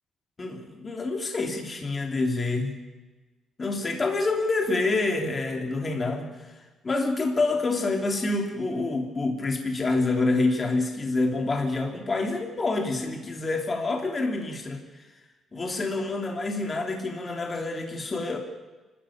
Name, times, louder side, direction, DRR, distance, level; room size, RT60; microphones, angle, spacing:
voice 1, 0.4-2.7 3.6-6.3 6.8-15.0 15.5-18.4, left 3 dB, 30° left, 2 dB, 3.3 m, -27 dB
27.5 x 13.5 x 8.8 m, 1.2 s
cardioid pair, 90°, 0 cm